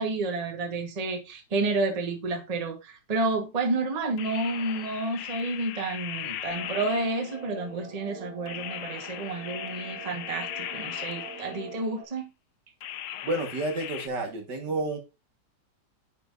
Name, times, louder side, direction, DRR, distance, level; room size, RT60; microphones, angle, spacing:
voice 1, 0.0-12.3, right 3 dB, 25° right, 1.1 m, -30 dB
sound 1, 4.2-7.6 8.5-11.9 12.8-14.1, left 11 dB, 75° left, 1.2 m, -38 dB
sound 2, 6.5-12.0, right 5 dB, 60° right, 1.6 m, -44 dB
voice 2, 13.2-15.0, right 2 dB, 75° right, 2.2 m, -30 dB
10.0 x 5.3 x 2.5 m
omnidirectional pair, 1.9 m